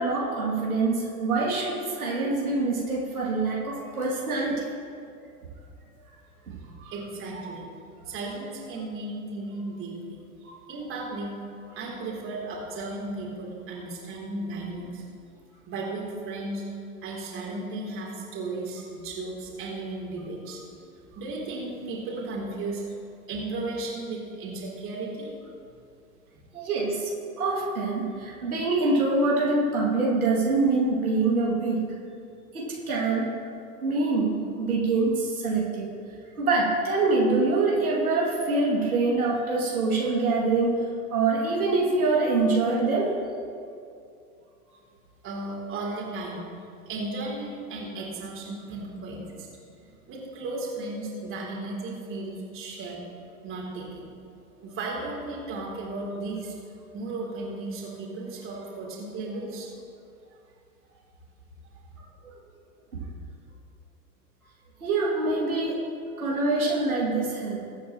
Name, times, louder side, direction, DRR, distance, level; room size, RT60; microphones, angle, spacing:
voice 1, 0.0-4.7 10.4-10.5 26.5-27.1 27.4-31.9 32.5-33.3 33.8-35.9 36.4-40.9 41.1-43.1 64.8-65.9 66.2-67.6, right 3 dB, 70° right, -4 dB, 2.7 m, -25 dB
voice 2, 6.6-7.7 8.1-10.2 10.7-11.3 11.7-15.0 15.7-16.6 17.0-20.6 21.1-22.8 23.3-25.3 45.2-46.5 46.9-49.5 50.1-53.0 53.4-54.1 54.6-56.5 56.9-59.7 61.6-61.7, right 2 dB, 30° right, -3 dB, 3.5 m, -35 dB
22.0 x 9.2 x 3.1 m, 2.4 s
figure-of-eight pair, 90°, 45 cm